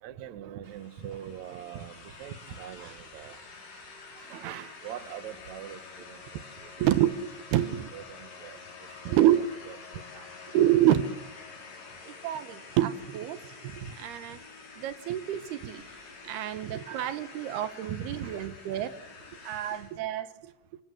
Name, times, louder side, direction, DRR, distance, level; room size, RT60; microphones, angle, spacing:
voice 1, 0.0-3.4 4.1-6.9 7.9-8.6 8.9-9.8 10.1-10.3 10.6-10.7 13.8-13.9 16.9-17.2 17.8-18.5 18.8-18.9, right 9 dB, 90° right, 12 dB, 1.6 m, -42 dB
sound 1, 0.6-20.0, left 4 dB, 45° left, 6.0 m, -48 dB
sound 2, 4.8-13.8, left 7 dB, 85° left, 4.4 m, -54 dB
voice 2, 6.8-7.1 7.5-7.7 9.1-9.4 10.5-11.1 12.1-13.5 14.0-14.4 14.8-15.8 16.2-18.9 19.4-20.5, right 12 dB, 70° right, 13 dB, 2.5 m, -27 dB
28.5 x 25.0 x 7.8 m, 0.88 s
omnidirectional pair, 5.8 m